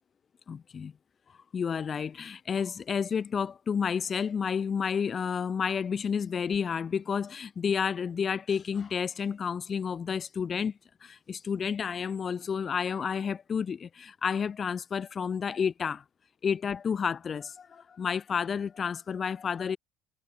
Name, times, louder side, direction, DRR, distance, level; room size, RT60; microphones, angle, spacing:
voice 1, 0.5-0.9 1.5-10.7 11.0-16.0 16.4-19.8, left 6 dB, 30° left, 6.4 m, -30 dB
cardioid pair, 140°, 0 cm